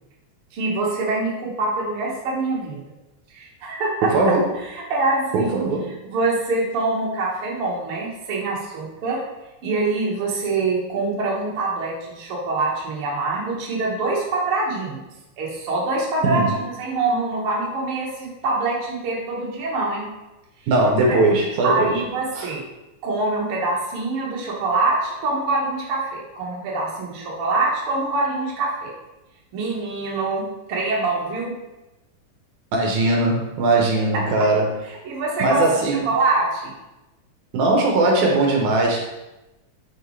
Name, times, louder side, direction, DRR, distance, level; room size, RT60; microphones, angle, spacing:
voice 1, 0.5-2.8 3.3-4.1 4.6-5.6 6.0-9.2 9.6-15.0 15.4-20.1 21.0-21.2 21.6-22.6 23.0-28.9 29.5-31.5 35.0-36.7, right 3 dB, 55° right, -4 dB, 1.8 m, -24 dB
voice 2, 4.1-4.5 5.3-5.9 16.2-16.6 20.7-22.0 22.4-22.5 32.7-34.7 35.4-36.1 37.5-39.0, right 2 dB, 80° right, 0 dB, 2.3 m, -19 dB
5.6 x 5.5 x 3.1 m, 0.99 s
omnidirectional pair, 3.4 m